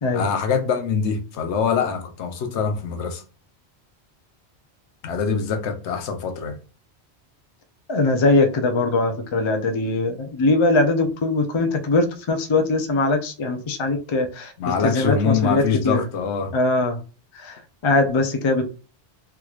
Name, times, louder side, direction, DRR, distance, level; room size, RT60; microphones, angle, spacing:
voice 1, 0.1-3.2 5.0-6.6 14.6-16.5, left 6 dB, 80° left, 1.0 m, -24 dB
voice 2, 7.9-16.0 16.5-17.0 17.3-18.6, left 2 dB, 40° left, 0.4 m, -21 dB
3.5 x 3.0 x 2.4 m
omnidirectional pair, 1.1 m